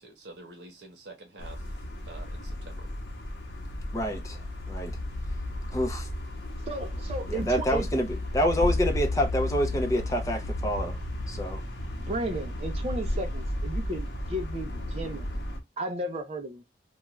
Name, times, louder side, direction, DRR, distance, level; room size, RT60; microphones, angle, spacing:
voice 1, 0.0-1.6 2.1-2.9, right 2 dB, 75° right, 0.8 m, -47 dB
sound 1, 1.4-15.6, left 1 dB, 75° left, 0.8 m, -33 dB
voice 2, 3.9-4.4 4.7-5.0 5.7-6.1 7.3-11.0 11.3-11.6, equal, 20° left, 0.5 m, -27 dB
voice 3, 6.7-7.9 12.0-15.3 15.8-16.6, right 1 dB, 35° right, 0.4 m, -34 dB
2.4 x 2.2 x 2.9 m
head